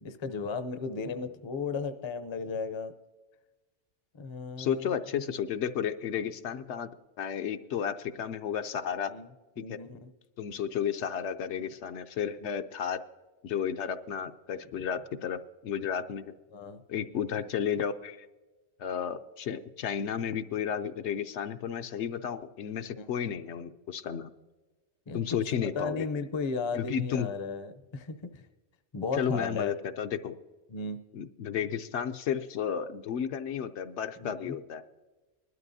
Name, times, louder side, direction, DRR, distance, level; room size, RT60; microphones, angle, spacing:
voice 1, 0.0-2.9 4.1-5.0 9.1-9.3 9.6-10.1 11.6-11.7 12.4-12.5 16.5-16.8 23.0-23.4 25.1-25.2 25.8-28.4 28.9-29.7 30.7-31.0 34.2-34.5, left 4 dB, 35° left, 9 dB, 0.5 m, -35 dB
voice 2, 4.6-6.9 7.2-9.1 9.7-9.8 10.4-13.0 13.4-16.3 16.9-18.3 18.8-24.3 25.1-26.1 26.7-27.3 29.1-30.3 31.1-34.8, left 8 dB, 75° left, 8 dB, 0.9 m, -32 dB
20.5 x 12.5 x 2.7 m, 1.2 s
omnidirectional pair, 1.2 m